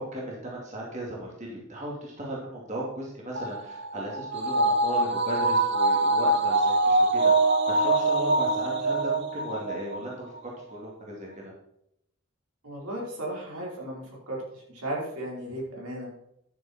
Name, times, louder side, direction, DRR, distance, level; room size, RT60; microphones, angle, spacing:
voice 1, 0.0-11.5, right 1 dB, 30° right, -3 dB, 2.5 m, -36 dB
sound 1, 3.3-10.0 10.4-10.5, right 2 dB, 50° right, 1.0 m, -24 dB
voice 2, 12.6-16.1, right 1 dB, 85° right, -3 dB, 4.7 m, -35 dB
11.0 x 7.3 x 4.4 m, 0.76 s
head